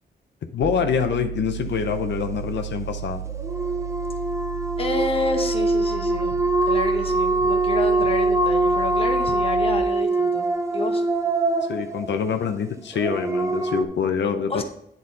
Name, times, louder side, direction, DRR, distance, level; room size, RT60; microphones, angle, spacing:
voice 1, 0.4-3.2 11.7-14.6, left 7 dB, 80° left, 7 dB, 0.6 m, -25 dB
sound 1, 0.6-9.8, right 10 dB, 70° right, 0.4 m, -33 dB
sound 2, 3.3-13.8, right 2 dB, 15° right, 0.5 m, -23 dB
voice 2, 4.8-11.0 14.5-14.6, left 2 dB, 30° left, 4 dB, 0.9 m, -29 dB
9.7 x 4.0 x 4.1 m, 0.76 s
wide cardioid pair, 155°, 18 cm